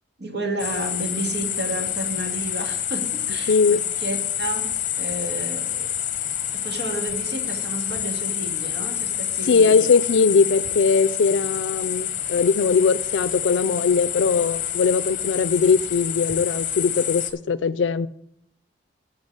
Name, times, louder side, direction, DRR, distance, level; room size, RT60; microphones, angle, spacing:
voice 1, 0.2-4.7 5.0-5.9 6.5-9.9, right 1 dB, 65° right, 3 dB, 2.2 m, -31 dB
sound 1, 0.6-17.3, left 10 dB, 45° left, 1.0 m, -28 dB
voice 2, 3.5-3.8 9.5-18.1, left 5 dB, 85° left, 17 dB, 0.4 m, -20 dB
9.6 x 5.3 x 8.0 m, 0.69 s
head